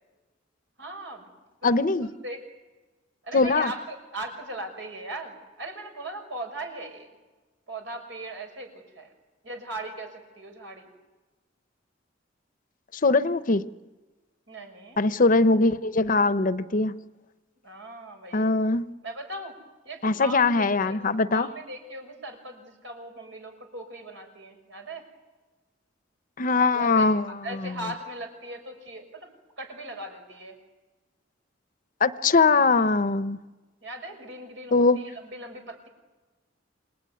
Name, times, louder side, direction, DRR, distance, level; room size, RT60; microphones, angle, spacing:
voice 1, 0.8-1.3 1.6-2.4 3.2-7.1 7.7-9.1 9.4-10.9 14.5-15.0 17.6-18.5 19.0-19.6 19.8-21.0 21.3-25.1 26.7-27.1 27.4-29.3 29.6-30.6 33.8-35.9, right 1 dB, 75° right, 6.1 m, -39 dB
voice 2, 1.6-2.1 3.3-3.7 12.9-13.6 15.0-16.9 18.3-18.8 20.0-21.5 26.4-27.7 32.0-33.4 34.7-35.0, left 3 dB, 45° left, 0.8 m, -22 dB
28.0 x 21.0 x 9.5 m
head